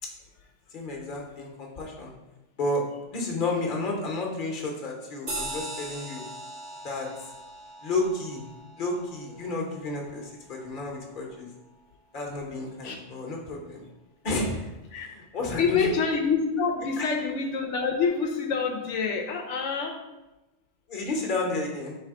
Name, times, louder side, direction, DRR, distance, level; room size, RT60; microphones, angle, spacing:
voice 1, 0.7-2.1 2.6-2.8 3.1-6.2 6.8-7.1 7.8-8.4 8.8-11.5 12.1-13.8 14.2-14.7 15.0-15.9 17.0-17.1 20.9-22.0, left 2 dB, 50° left, 0 dB, 1.0 m, -31 dB
sound 1, 5.3-10.2, right 2 dB, 65° right, 1.8 m, -40 dB
voice 2, 15.6-20.0, left 5 dB, 85° left, 3 dB, 0.9 m, -27 dB
3.4 x 3.3 x 4.7 m, 1.0 s
omnidirectional pair, 1.2 m